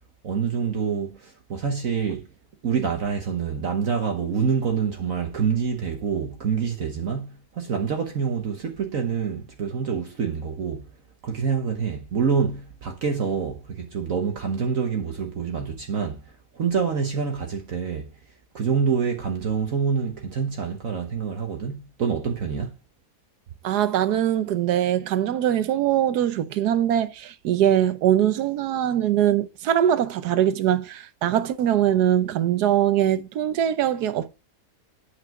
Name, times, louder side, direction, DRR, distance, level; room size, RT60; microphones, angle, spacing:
voice 1, 0.2-2.3 2.6-10.9 11.2-16.2 16.5-18.1 18.5-22.7, right 6 dB, 55° right, 1.4 m, -26 dB
voice 2, 23.6-34.3, right 11 dB, 75° right, 1.3 m, -22 dB
8.7 x 4.8 x 4.6 m
omnidirectional pair, 1.7 m